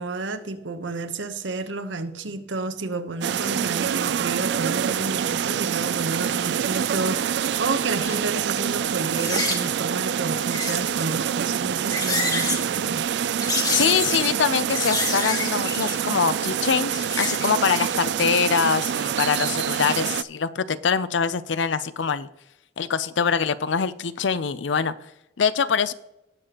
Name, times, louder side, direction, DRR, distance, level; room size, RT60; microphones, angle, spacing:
voice 1, 0.0-13.0, right 3 dB, 80° right, 0.9 m, -31 dB
sound 1, 3.2-20.2, right 8 dB, 60° right, 0.3 m, -26 dB
sound 2, 8.0-8.2 9.1-9.7 10.4-11.0 11.7-12.6 13.4-14.4 14.7-16.1 16.8-17.9 18.2-18.3, left 2 dB, 20° left, 1.7 m, -28 dB
voice 2, 13.7-22.3 22.8-24.9 25.4-25.9, left 6 dB, 75° left, 0.5 m, -24 dB
18.5 x 6.7 x 2.9 m
head